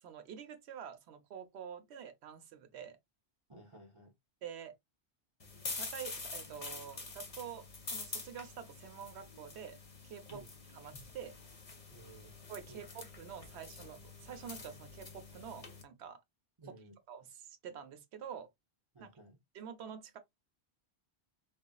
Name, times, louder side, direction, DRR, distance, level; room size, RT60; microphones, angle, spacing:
voice 1, 0.0-3.0 4.4-4.7 5.7-9.8 10.0-10.4 10.7-11.4 12.5-16.2 16.6-16.7 17.1-18.5 19.0-19.1 19.5-20.2, right 8 dB, 85° right, 0.9 m, -47 dB
voice 2, 3.5-4.1 10.3-10.5 11.9-12.4 12.7-12.8 16.6-17.0 18.9-19.4, right 2 dB, 30° right, 0.8 m, -54 dB
sound 1, 5.4-15.8, left 3 dB, 40° left, 0.8 m, -46 dB
3.8 x 2.3 x 2.2 m
omnidirectional pair, 1.1 m